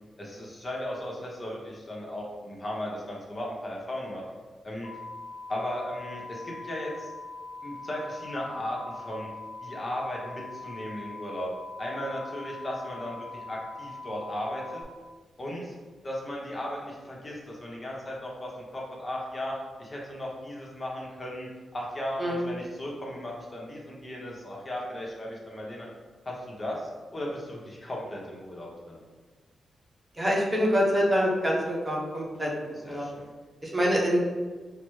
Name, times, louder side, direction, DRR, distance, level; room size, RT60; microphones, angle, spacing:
voice 1, 0.2-4.2 4.6-4.9 5.5-7.1 7.6-9.3 9.6-11.5 11.8-14.8 15.4-15.8 16.0-25.9 26.2-29.0 32.8-33.3, left 1 dB, 35° left, -3 dB, 0.9 m, -36 dB
sound 1, 4.8-14.8, left 3 dB, 90° left, 0.6 m, -42 dB
voice 2, 30.1-33.1 33.6-34.2, equal, 25° right, -3 dB, 0.9 m, -26 dB
4.9 x 2.1 x 3.1 m, 1.4 s
cardioid pair, 75°, 0 cm